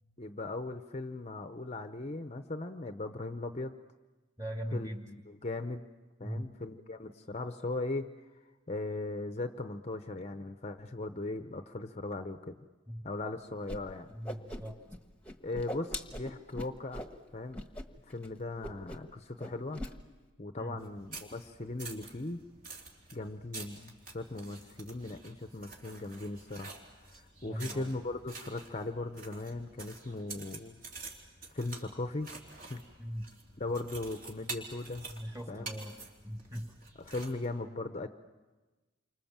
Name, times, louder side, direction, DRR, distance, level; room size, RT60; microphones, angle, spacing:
voice 1, 0.2-3.7 4.7-5.8 6.2-8.1 8.7-12.6 13.0-14.1 15.4-17.0 17.3-17.6 18.1-19.8 20.4-22.4 23.1-26.7 27.1-30.8 31.5-32.3 32.7-32.8 33.6-35.1 35.5-35.8 36.9-38.1, left 2 dB, 35° left, 8 dB, 0.8 m, -38 dB
voice 2, 4.4-5.0 6.2-6.6 12.9-13.1 14.1-14.8 20.6-20.8 27.4-27.9 33.0-33.3 35.1-36.0 36.2-36.8, equal, 15° right, 3 dB, 2.4 m, -40 dB
Whoosh swoosh swish, 13.7-13.8 14.1-15.0 15.2-17.1 17.5-17.9 18.1-18.3 18.6-19.1 19.4-19.9, left 1 dB, 5° left, 1.3 m, -41 dB
sound 1, 20.8-37.5, right 3 dB, 45° right, 3.6 m, -48 dB
29.0 x 25.5 x 7.4 m, 1.2 s
head